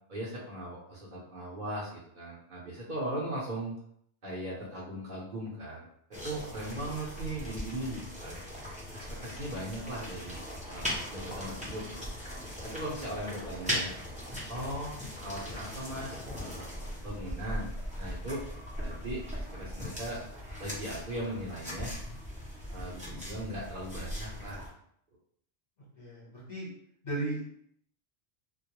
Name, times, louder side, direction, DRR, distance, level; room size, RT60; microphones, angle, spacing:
voice 1, 0.1-3.8 4.2-5.8 6.1-8.4 8.9-10.4 10.7-11.8 12.6-13.9 14.5-14.9 15.2-16.7 17.0-17.7 18.0-18.4 18.8-20.2 20.6-21.9 22.7-24.6, right 1 dB, 55° right, -6 dB, 0.7 m, -38 dB
sound 1, 6.1-24.7, equal, 10° right, 0.4 m, -39 dB
voice 2, 26.0-26.7 27.0-27.5, right 2 dB, 45° left, -7 dB, 0.9 m, -36 dB
2.2 x 2.0 x 2.8 m, 0.68 s
omnidirectional pair, 1.1 m